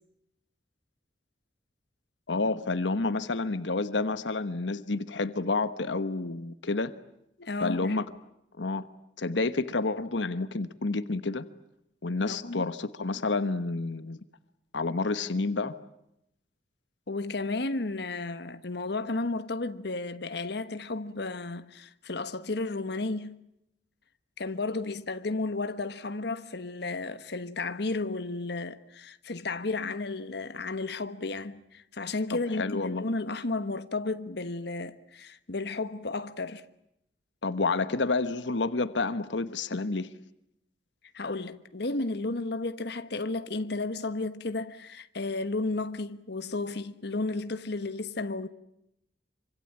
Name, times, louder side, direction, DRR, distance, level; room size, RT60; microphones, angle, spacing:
voice 1, 2.3-6.9 7.6-8.1 8.6-8.9 9.2-11.4 12.0-14.2 14.7-15.8 32.5-33.0 37.4-40.1, left 3 dB, 85° left, 1.2 m, -29 dB
voice 2, 7.4-8.0 12.3-12.7 17.1-23.4 24.4-36.7 41.1-48.5, left 3 dB, 65° left, 1.2 m, -33 dB
26.5 x 25.5 x 8.7 m
head